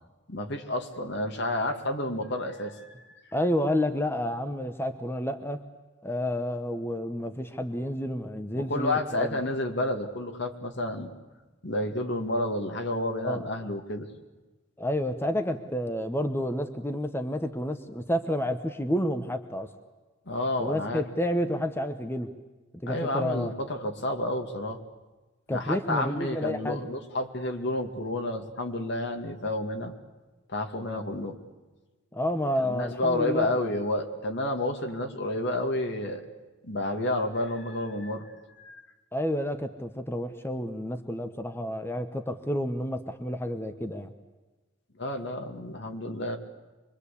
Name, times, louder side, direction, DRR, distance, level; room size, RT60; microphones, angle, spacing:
voice 1, 0.3-2.9 8.6-11.1 11.6-14.1 20.3-21.1 22.9-24.8 25.5-29.9 30.5-31.3 32.6-36.2 36.6-38.3 38.6-38.8 45.0-46.4, left 1 dB, 60° left, 6 dB, 2.3 m, -30 dB
voice 2, 3.3-5.6 6.0-9.4 13.2-13.5 14.8-19.7 20.6-22.3 22.8-23.5 25.5-26.9 32.1-33.5 39.1-44.1, equal, 10° left, 8 dB, 1.1 m, -30 dB
25.5 x 22.5 x 8.5 m, 1.2 s
head